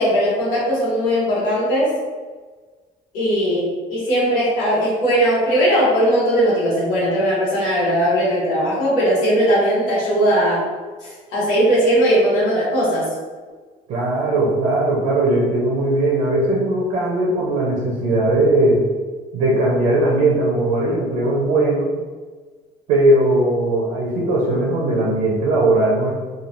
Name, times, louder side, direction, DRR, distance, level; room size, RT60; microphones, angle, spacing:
voice 1, 0.0-1.9 3.1-10.6 11.0-13.1, equal, 80° left, -8 dB, 1.4 m, -18 dB
voice 2, 13.9-18.8 19.3-21.9 22.9-26.1, right 2 dB, 70° right, -3 dB, 0.6 m, -18 dB
3.1 x 2.4 x 2.5 m, 1.4 s
cardioid pair, 175°, 14 cm